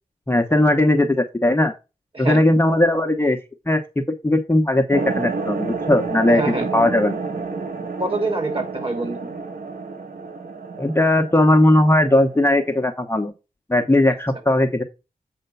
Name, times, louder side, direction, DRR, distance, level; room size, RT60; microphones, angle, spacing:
voice 1, 0.3-1.7 2.2-3.4 3.7-7.2 10.8-13.3 13.7-14.8, left 1 dB, 15° left, 4 dB, 0.9 m, -18 dB
voice 2, 2.1-2.5 6.3-6.7 8.0-9.3, right 2 dB, 35° right, 3 dB, 2.9 m, -26 dB
sound 1, 4.9-12.8, right 4 dB, 70° right, 1.6 m, -30 dB
7.8 x 4.4 x 5.6 m, 0.27 s
wide cardioid pair, 110°, 15 cm